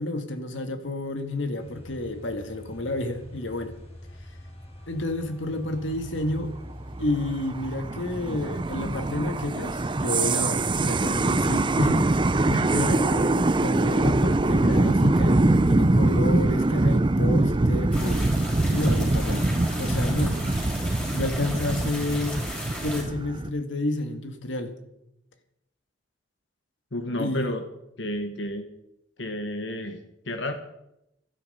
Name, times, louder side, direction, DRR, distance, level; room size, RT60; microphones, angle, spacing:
voice 1, 0.0-3.8 4.9-6.5 7.0-12.1 12.7-18.2 18.7-20.4 21.1-22.5 22.8-24.7 27.2-27.5, left 2 dB, 85° left, 8 dB, 1.8 m, -30 dB
sound 1, 1.6-10.6, equal, 35° left, 4.7 m, -44 dB
sound 2, 7.0-23.5, right 2 dB, 25° right, 0.6 m, -23 dB
sound 3, 17.9-23.0, left 1 dB, 10° left, 5.5 m, -36 dB
voice 2, 26.9-27.6 28.0-28.7 29.2-30.5, left 1 dB, 70° left, 7 dB, 1.3 m, -31 dB
17.0 x 12.5 x 5.5 m, 0.86 s
head